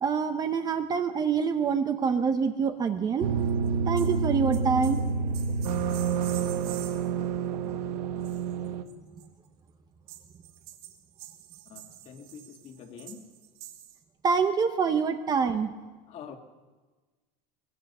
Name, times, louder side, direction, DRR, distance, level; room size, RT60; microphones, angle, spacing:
voice 1, 0.0-3.3 3.9-5.0 14.2-15.7, right 6 dB, 20° right, 7 dB, 0.8 m, -26 dB
sound 1, 3.2-8.8, right 5 dB, 85° right, 1.4 m, -28 dB
sound 2, 3.5-3.7 4.0-4.3 4.5-7.1 8.2-9.3 10.1-14.0, right 12 dB, 60° right, 2.4 m, -47 dB
voice 2, 11.7-13.2 16.1-16.4, left 7 dB, 30° left, 5 dB, 1.8 m, -45 dB
23.5 x 21.0 x 5.5 m, 1.3 s
cardioid pair, 175°, 20 cm